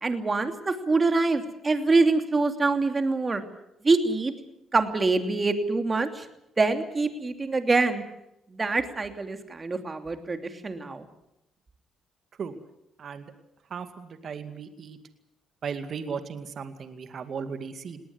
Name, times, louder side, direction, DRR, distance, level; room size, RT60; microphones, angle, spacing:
voice 1, 0.0-3.4 3.8-4.3 4.7-6.3 6.6-8.0 8.5-11.1, right 3 dB, 30° right, 7 dB, 2.8 m, -25 dB
voice 2, 13.0-13.3 13.7-15.0 15.6-18.0, right 6 dB, 55° right, 9 dB, 2.2 m, -36 dB
20.0 x 18.5 x 9.7 m, 0.83 s
cardioid pair, 90°, 0 cm